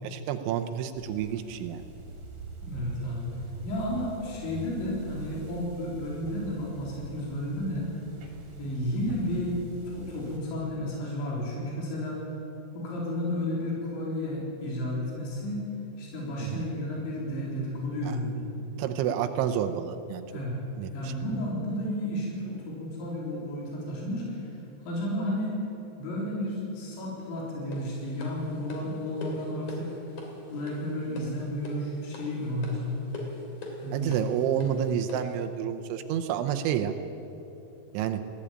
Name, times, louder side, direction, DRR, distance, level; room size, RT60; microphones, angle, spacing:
voice 1, 0.0-1.8 16.4-16.6 18.8-20.3 20.8-21.1 33.9-36.9 37.9-38.2, right 9 dB, 85° right, 7 dB, 3.3 m, -29 dB
sound 1, 0.9-10.4, right 3 dB, 45° right, 3.6 m, -44 dB
voice 2, 2.6-3.3 3.6-7.9 8.6-9.6 9.9-12.2 12.7-15.6 16.0-18.5 20.3-20.6 20.9-24.5 24.8-25.6 26.0-29.9 30.4-33.0 33.8-34.9, left 1 dB, 75° left, -4 dB, 6.1 m, -32 dB
sound 2, 27.7-35.4, left 2 dB, 45° left, 3.9 m, -43 dB
20.0 x 15.0 x 8.8 m, 2.9 s
omnidirectional pair, 5.3 m